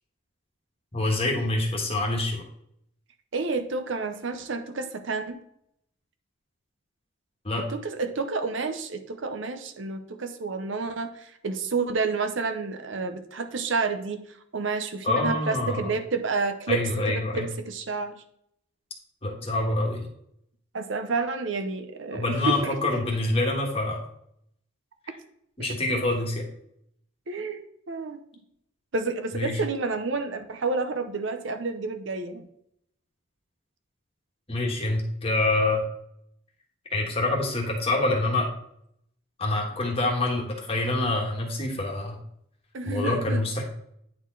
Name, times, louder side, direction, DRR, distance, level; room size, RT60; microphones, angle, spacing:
voice 1, 0.9-2.4 7.4-7.7 15.0-15.9 16.7-17.5 19.2-20.1 22.1-24.1 25.1-25.2 25.6-26.4 29.3-29.6 34.5-35.8 36.9-38.5 39.4-42.2 42.8-43.6, left 2 dB, 30° left, 0 dB, 1.4 m, -26 dB
voice 2, 3.3-5.4 7.7-14.2 14.5-16.8 17.1-18.2 20.7-22.7 27.3-27.6 27.9-28.2 28.9-32.5 42.7-43.4, right 4 dB, 65° right, 8 dB, 0.7 m, -30 dB
9.3 x 4.4 x 3.9 m, 0.72 s
head